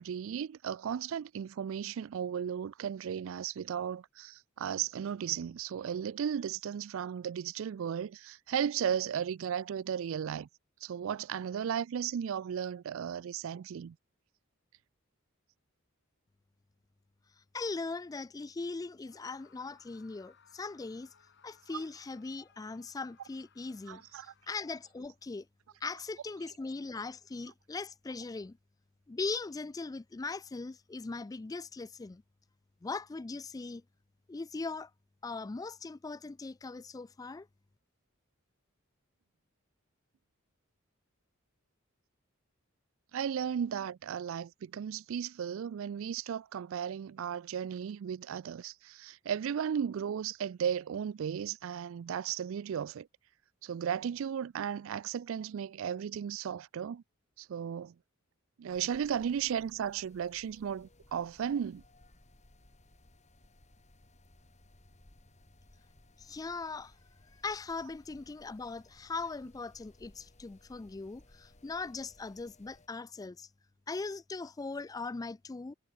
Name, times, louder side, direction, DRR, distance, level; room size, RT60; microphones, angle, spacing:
voice 1, 0.0-10.5 10.8-14.0 21.7-21.8 23.9-24.3 43.1-53.1 53.6-57.0 57.4-57.9 58.6-61.8, right 8 dB, 65° right, 0.3 m, -35 dB
voice 2, 17.5-21.1 21.4-25.5 25.8-28.6 29.1-32.2 32.8-33.8 34.3-34.9 35.2-37.5 66.2-66.9 67.3-73.5 73.9-75.7, left 3 dB, 15° left, 0.3 m, -40 dB
Screaming, 19.0-25.2, left 6 dB, 55° left, 2.8 m, -65 dB
sound 1, 58.7-72.9, left 1 dB, 35° left, 2.3 m, -61 dB
head